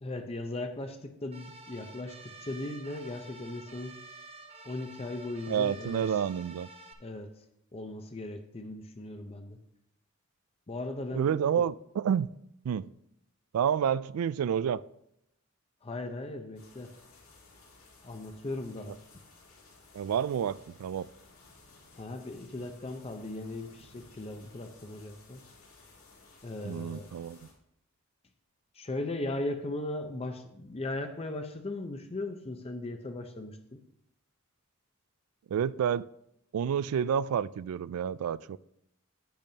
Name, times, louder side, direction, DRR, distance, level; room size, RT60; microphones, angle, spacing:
voice 1, 0.0-4.0 4.6-6.0 7.0-7.3 7.7-9.6 10.7-11.3 11.6-11.7 15.8-16.9 18.0-19.0 22.0-25.4 26.4-27.1 28.7-33.8, left 2 dB, 30° left, 0.6 m, -38 dB
sound 1, 1.3-6.9, right 2 dB, 30° right, 0.9 m, -50 dB
voice 2, 5.5-6.7 11.1-12.3 12.6-12.9 13.5-14.8 19.9-21.1 26.6-27.4 35.5-36.1 36.5-38.6, right 8 dB, 85° right, 0.3 m, -29 dB
sound 2, 16.6-27.5, left 3 dB, 75° left, 3.4 m, -57 dB
10.5 x 9.0 x 2.8 m
head